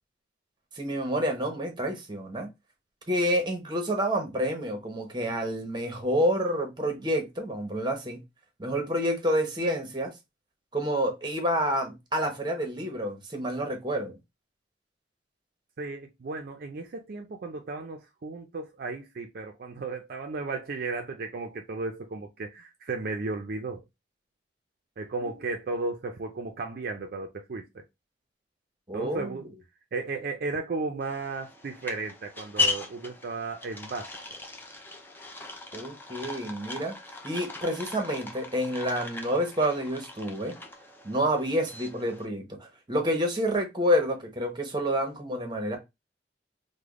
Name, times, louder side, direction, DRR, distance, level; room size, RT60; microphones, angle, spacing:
voice 1, 0.7-2.5 3.1-8.2 8.6-10.1 10.7-14.2 25.2-25.3 28.9-29.3 35.7-37.0 37.2-40.6 41.0-45.8, equal, 25° right, 0.9 m, -28 dB
voice 2, 15.8-23.8 25.0-27.8 28.9-29.5 29.9-34.1, right 3 dB, 55° right, 0.4 m, -34 dB
sound 1, 31.0-42.3, left 3 dB, 10° left, 0.5 m, -37 dB
3.4 x 2.1 x 3.5 m
head